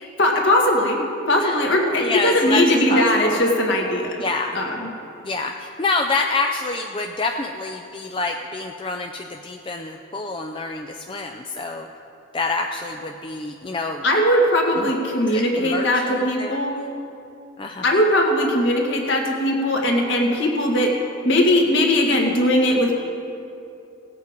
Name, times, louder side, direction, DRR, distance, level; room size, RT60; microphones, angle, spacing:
voice 1, 0.2-1.0 1.3-4.2 4.5-4.9 14.0-16.8 17.8-20.9 21.2-22.9, left 1 dB, 60° left, 0 dB, 1.8 m, -19 dB
voice 2, 2.0-3.4 4.2-4.6 5.2-11.9 12.3-14.0 14.8-14.9 15.3-16.6 17.6-17.9, left 3 dB, 25° left, 3 dB, 0.4 m, -27 dB
17.5 x 8.2 x 5.1 m, 2.7 s
head